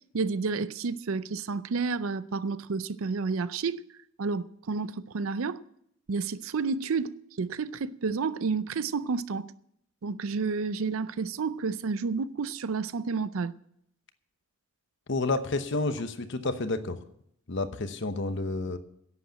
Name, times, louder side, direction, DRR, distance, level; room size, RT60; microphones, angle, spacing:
voice 1, 0.1-3.8 4.2-5.6 6.1-9.5 10.0-13.5, right 4 dB, 80° right, 0.5 m, -30 dB
voice 2, 15.1-17.0 17.5-18.8, left 2 dB, 60° left, 0.9 m, -30 dB
11.0 x 8.3 x 8.9 m
head